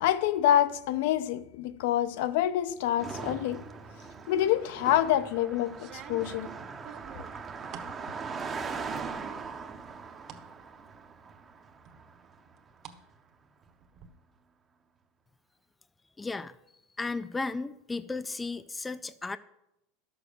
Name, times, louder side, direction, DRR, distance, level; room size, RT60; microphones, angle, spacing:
voice 1, 0.0-3.6 4.3-6.5, left 11 dB, 70° left, 0.6 m, -26 dB
Car passing by, 3.0-12.5, right 5 dB, 20° right, 0.8 m, -40 dB
sound 1, 4.7-5.1 5.7-8.0 8.4-9.0 9.4-10.5 10.9-11.0 11.9-13.0 13.3-14.1, right 8 dB, 45° right, 1.1 m, -49 dB
voice 2, 16.2-16.5 17.0-19.4, left 3 dB, 10° left, 0.4 m, -34 dB
11.0 x 6.9 x 6.7 m
supercardioid pair, 135°, 0 cm